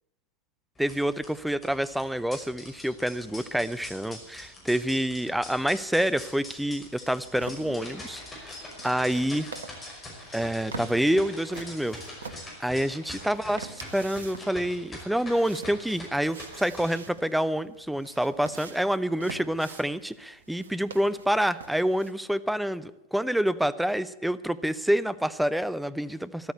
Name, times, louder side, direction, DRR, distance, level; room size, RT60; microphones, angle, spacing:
sound 1, 0.8-16.8, left 1 dB, 15° left, 5.6 m, -44 dB
voice 1, 0.8-8.5 8.8-9.5 10.3-12.0 12.6-26.5, equal, ahead, 15 dB, 0.6 m, -27 dB
sound 2, 7.4-22.1, right 4 dB, 70° right, 1.2 m, -46 dB
13.5 x 12.5 x 8.2 m, 0.90 s
figure-of-eight pair, 90°, 0 cm